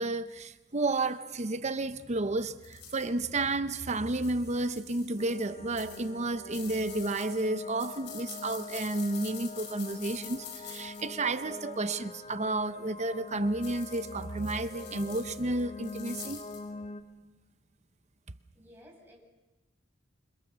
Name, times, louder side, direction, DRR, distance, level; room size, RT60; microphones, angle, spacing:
voice 1, 0.0-16.4, right 2 dB, 40° right, 0.8 m, -31 dB
sound 1, 2.6-3.3 4.1-5.4 5.8-11.7 13.6-16.6, left 7 dB, 65° left, 5.0 m, -47 dB
sound 2, 5.2-17.0, left 3 dB, 40° left, 1.6 m, -44 dB
voice 2, 18.5-19.2, equal, 10° right, 7.9 m, -54 dB
28.0 x 25.5 x 6.9 m
head